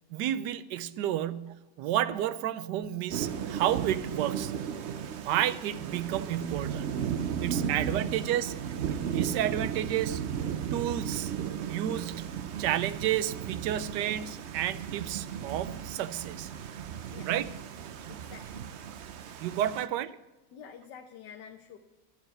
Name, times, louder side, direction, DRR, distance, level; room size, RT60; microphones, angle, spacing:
voice 1, 0.1-4.5 5.2-6.9 7.4-8.5 9.1-10.2 10.7-11.3 11.7-12.3 12.6-16.5 17.3-17.5 19.4-20.1, right 11 dB, 80° right, 15 dB, 1.2 m, -31 dB
Thunder / Rain, 3.1-19.9, right 8 dB, 60° right, 0.7 m, -35 dB
voice 2, 17.1-17.6 18.1-18.7 19.7-19.9 20.5-21.8, left 8 dB, 80° left, 5 dB, 1.5 m, -49 dB
11.5 x 7.3 x 9.1 m, 1.1 s
omnidirectional pair, 1.9 m